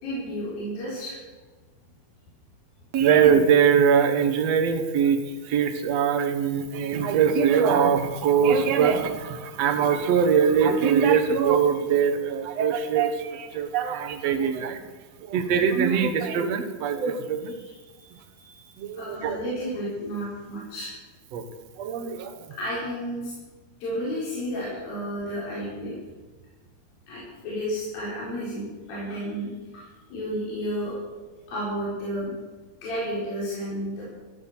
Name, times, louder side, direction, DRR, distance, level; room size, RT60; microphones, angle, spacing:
voice 1, 0.0-1.2 17.6-17.7 18.4-18.6 18.9-20.9 22.6-23.3 23.8-25.9 27.1-29.5 29.7-31.0 31.5-32.3 32.8-34.1, equal, 70° left, -7 dB, 6.4 m, -32 dB
voice 2, 2.9-14.8 15.2-17.5 18.8-19.4 21.3-21.4 21.8-22.5, right 7 dB, 60° right, 8 dB, 2.0 m, -22 dB
15.5 x 12.5 x 7.3 m, 1.3 s
omnidirectional pair, 4.3 m